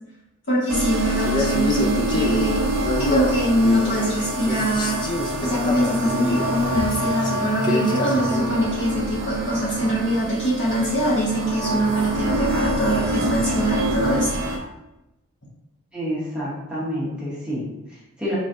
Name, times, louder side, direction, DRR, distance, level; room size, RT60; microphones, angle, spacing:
voice 1, 0.5-2.7 3.0-5.0 5.4-14.3, right 1 dB, 55° left, -7 dB, 1.4 m, -23 dB
sound 1, 0.7-14.6, right 1 dB, 70° right, 0.8 m, -26 dB
Male speech man speaking, 1.2-4.2 4.5-8.6, left 2 dB, 20° left, 0.3 m, -28 dB
voice 2, 15.9-18.4, equal, 5° right, -9 dB, 1.2 m, -29 dB
4.5 x 3.1 x 2.6 m, 0.93 s
head